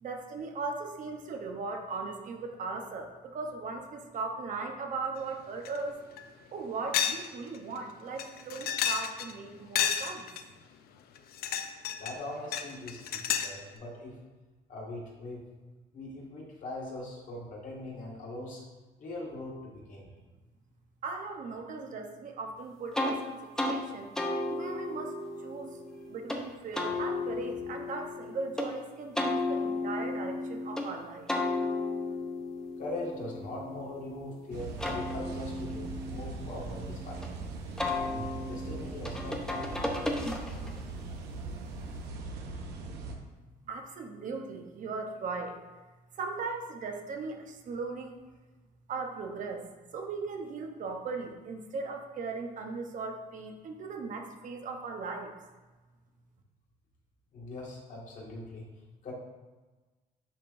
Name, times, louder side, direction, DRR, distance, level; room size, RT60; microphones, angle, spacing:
voice 1, 0.0-6.0 6.5-10.3 21.0-24.1 24.5-25.8 26.1-31.3 43.6-45.6 46.1-48.2 48.9-55.3, right 4 dB, 50° right, 3 dB, 0.8 m, -38 dB
sound 1, 5.6-5.8 6.2-6.3 6.9-7.3 7.5-7.6 8.2-9.3 9.7-10.4 11.2-12.2 12.5-13.6, left 9 dB, 65° left, 0.5 m, -31 dB
voice 2, 12.0-14.1 14.7-15.5 15.9-18.6 19.0-20.1 26.0-26.2 32.8-37.3 37.9-39.7 57.3-58.6 59.0-59.1, left 2 dB, 50° left, -3 dB, 1.9 m, -41 dB
sound 2, 22.9-23.2 23.6-23.8 24.2-26.4 26.7-28.7 29.2-30.9 31.3-34.2 34.6-37.3 37.8-40.8, left 2 dB, 5° left, 0.7 m, -34 dB
sound 3, 34.5-43.2, right 3 dB, 80° right, 0.8 m, -40 dB
10.0 x 3.6 x 2.6 m, 1.2 s
cardioid pair, 110°, 17 cm